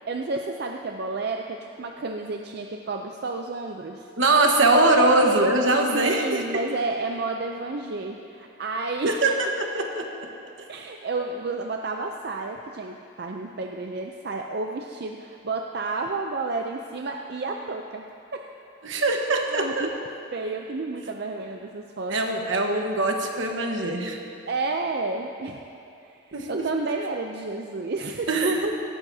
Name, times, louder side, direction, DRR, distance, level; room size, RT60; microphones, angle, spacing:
voice 1, 0.1-4.1 4.9-5.1 5.9-9.2 10.7-18.0 18.3-18.5 19.5-19.9 20.3-22.2 24.5-25.6 26.0-28.3, right 3 dB, 55° right, 3 dB, 0.5 m, -31 dB
voice 2, 4.2-6.4 9.0-10.0 18.8-19.9 22.1-24.2 26.3-26.7 28.3-28.7, right 2 dB, 75° right, 2 dB, 1.3 m, -22 dB
17.5 x 14.0 x 2.8 m, 2.7 s
head